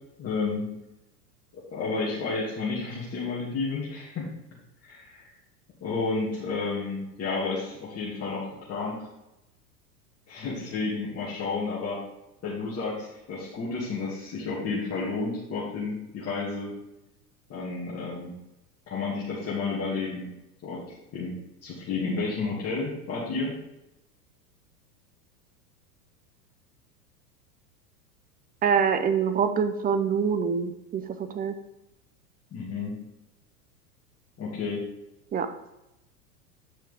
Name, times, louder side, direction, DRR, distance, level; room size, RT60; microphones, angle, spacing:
voice 1, 0.2-0.7 1.5-4.3 4.8-5.3 5.8-9.1 10.3-12.0 12.4-16.7 17.5-18.4 18.9-20.3 20.6-23.5 32.5-32.9 34.4-34.8, left 4 dB, 30° left, -7 dB, 2.4 m, -31 dB
voice 2, 28.6-31.5 35.3-35.5, right 6 dB, 20° right, 9 dB, 0.7 m, -25 dB
9.6 x 5.7 x 3.5 m, 0.90 s
hypercardioid pair, 95°, 48 cm